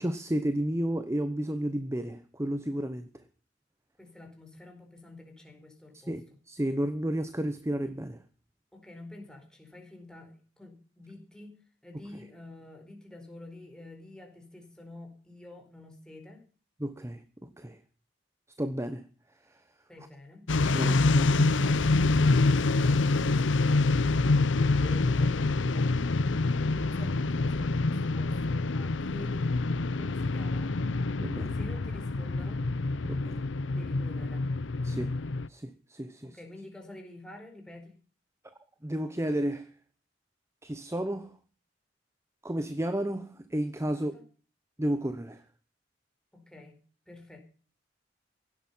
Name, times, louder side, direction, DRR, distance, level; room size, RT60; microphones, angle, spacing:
voice 1, 0.0-3.2 5.9-8.2 11.9-12.0 16.8-17.8 18.6-19.0 19.4-19.6 20.7-21.8 29.7-29.8 31.2-31.6 33.0-33.4 34.8-35.1 35.5-36.4 38.8-39.7 40.6-41.4 42.4-44.2 44.8-45.4, right 1 dB, 15° right, 1.0 m, -32 dB
voice 2, 4.0-6.1 8.7-11.5 11.8-16.4 19.9-20.5 24.7-26.0 26.7-29.6 29.9-30.8 31.5-32.7 33.8-34.5 36.2-38.0 43.9-44.2 46.3-46.8 47.1-47.4, left 2 dB, 5° left, 4.4 m, -48 dB
sound 1, 20.5-35.5, left 3 dB, 75° left, 0.7 m, -26 dB
17.0 x 12.0 x 5.6 m
head